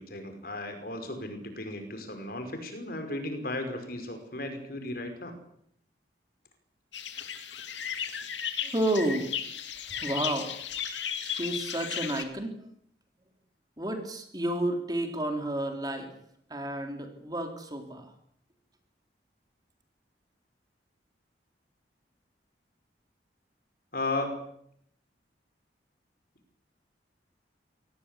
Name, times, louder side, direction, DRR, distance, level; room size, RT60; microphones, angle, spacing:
voice 1, 0.0-5.3 23.9-24.5, left 2 dB, 55° left, 7 dB, 5.5 m, -35 dB
sound 1, 6.9-12.2, left 8 dB, 85° left, 2.6 m, -35 dB
voice 2, 8.6-9.3 9.9-10.5 11.2-12.6 13.8-16.1 16.5-18.1, right 1 dB, 20° right, 4 dB, 3.9 m, -31 dB
26.0 x 19.0 x 8.5 m, 0.69 s
head